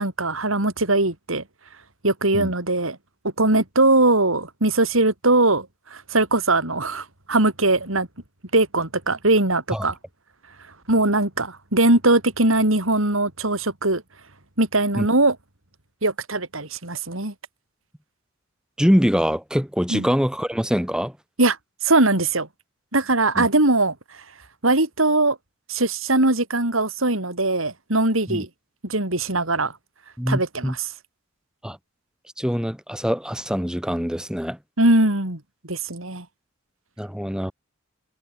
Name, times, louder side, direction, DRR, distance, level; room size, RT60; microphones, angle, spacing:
voice 1, 0.0-1.4 2.0-3.0 3.4-5.7 5.9-8.1 8.5-10.0 10.9-14.0 14.6-15.4 16.0-17.3 19.9-20.1 21.4-21.6 21.8-22.5 22.9-23.9 24.6-25.4 25.7-28.5 28.8-29.7 30.3-30.8 34.8-35.4 35.7-36.2, right 2 dB, 75° right, 4.5 m, -20 dB
voice 2, 18.8-21.1 23.4-23.5 28.3-28.4 30.2-30.8 31.6-31.8 32.4-34.6 37.0-37.5, equal, 5° right, 5.2 m, -23 dB
head